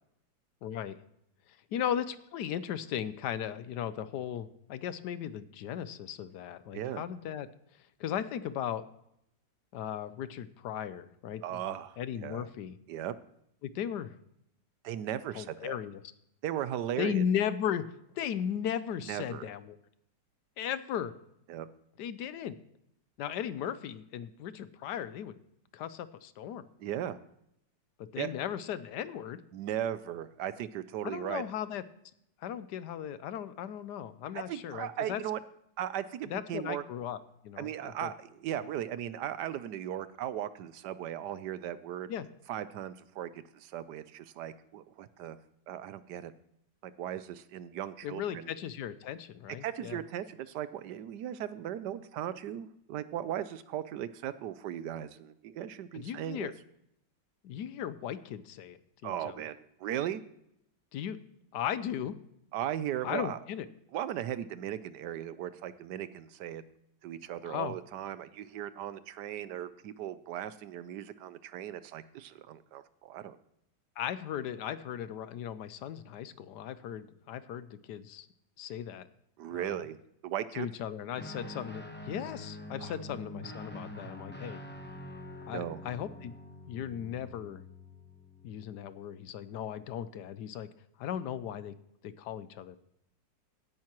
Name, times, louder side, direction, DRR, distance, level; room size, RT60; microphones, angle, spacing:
voice 1, 0.6-1.0 1.7-7.5 8.0-8.8 9.7-12.8 13.6-14.1 15.3-16.0 17.0-17.8 18.2-19.8 20.6-21.1 22.0-22.6 23.2-25.4 25.7-26.6 28.0-29.4 31.0-31.8 32.4-35.2 36.3-37.2 37.4-38.1 42.1-42.3 48.0-50.0 55.9-56.5 57.4-59.4 60.9-61.2 61.5-62.2 63.0-63.7 67.4-67.7 74.0-78.3 78.6-79.1 79.5-79.8 80.6-84.6 85.5-86.3 86.7-87.6 88.4-90.7 91.0-91.7 92.0-92.8, left 9 dB, 75° left, 14 dB, 1.2 m, -36 dB
voice 2, 11.4-12.5 12.9-13.1 14.8-15.8 16.4-17.2 19.0-19.5 21.5-21.7 26.8-27.2 28.2-28.3 29.5-31.4 34.3-35.4 35.8-36.8 37.6-42.1 42.5-45.4 45.7-46.3 46.8-48.5 49.6-56.5 59.0-60.2 62.5-63.4 63.9-66.6 67.0-73.4 79.4-80.0 80.2-80.7 82.8-83.0 85.5-85.8, right 11 dB, 75° right, 14 dB, 1.2 m, -37 dB
Guitar, 81.1-88.8, left 1 dB, 10° left, 0.6 m, -45 dB
16.0 x 10.5 x 3.0 m, 0.76 s
omnidirectional pair, 1.9 m